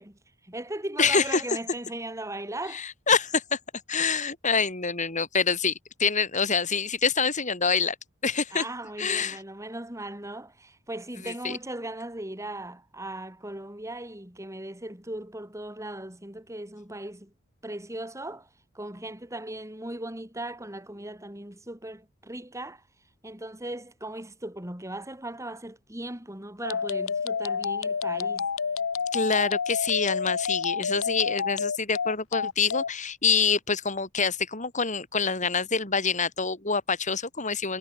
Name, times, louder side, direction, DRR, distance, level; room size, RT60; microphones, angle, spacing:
voice 1, 0.0-2.8 8.5-17.3 17.6-18.5 18.7-22.8 23.2-28.5, right 1 dB, 15° right, 4.1 m, -38 dB
voice 2, 1.0-1.4 2.7-3.6 3.9-5.7 6.0-7.9 8.2-8.6 9.0-9.4 11.2-11.6 29.1-37.8, left 5 dB, 35° left, 5.1 m, -26 dB
sound 1, 26.6-32.9, left 6 dB, 80° left, 0.8 m, -29 dB
head